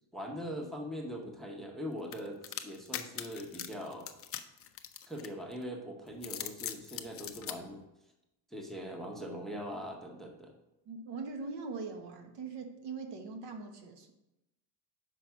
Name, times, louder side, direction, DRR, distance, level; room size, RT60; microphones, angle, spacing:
voice 1, 0.1-4.1 5.1-7.8 8.5-10.5, equal, ahead, 2 dB, 0.7 m, -41 dB
sound 1, 2.1-5.6 6.1-7.6, left 10 dB, 30° left, 0.4 m, -41 dB
voice 2, 10.9-14.1, right 4 dB, 60° right, 5 dB, 1.1 m, -41 dB
5.8 x 4.7 x 5.7 m, 0.92 s
cardioid pair, 140°, 46 cm